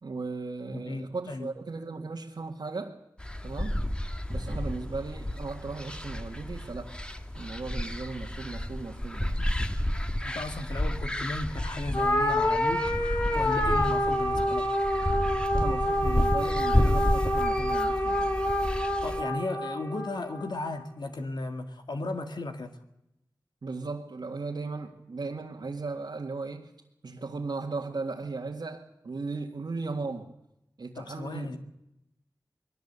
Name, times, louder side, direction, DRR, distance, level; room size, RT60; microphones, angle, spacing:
voice 1, 0.0-3.0 3.4-3.8 4.3-6.9 7.3-9.4 15.5-18.3 23.6-26.7 27.0-30.3 30.8-31.6, right 3 dB, 85° right, -2 dB, 1.9 m, -36 dB
voice 2, 0.7-1.5 10.2-13.0 13.3-14.7 19.0-22.7 31.0-31.6, left 2 dB, 85° left, 7 dB, 1.9 m, -35 dB
sound 1, 3.2-19.2, left 1 dB, 15° left, 1.6 m, -31 dB
sound 2, 11.9-20.5, left 1 dB, 35° left, 3.2 m, -27 dB
21.0 x 18.0 x 8.2 m, 0.85 s
wide cardioid pair, 50°, 7 cm